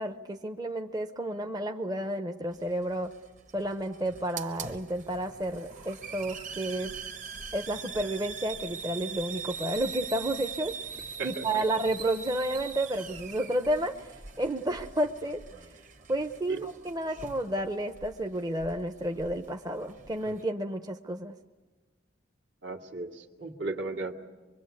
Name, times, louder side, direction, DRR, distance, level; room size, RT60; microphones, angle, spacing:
voice 1, 0.0-3.1 3.5-6.9 7.5-10.7 11.2-15.8 16.1-21.3, right 1 dB, 20° right, 5 dB, 0.8 m, -31 dB
Hiss, 2.5-20.4, right 6 dB, 40° right, 1.4 m, -43 dB
voice 2, 22.6-24.2, right 3 dB, 70° right, 2 dB, 2.2 m, -35 dB
25.0 x 23.0 x 8.4 m, 1.3 s
head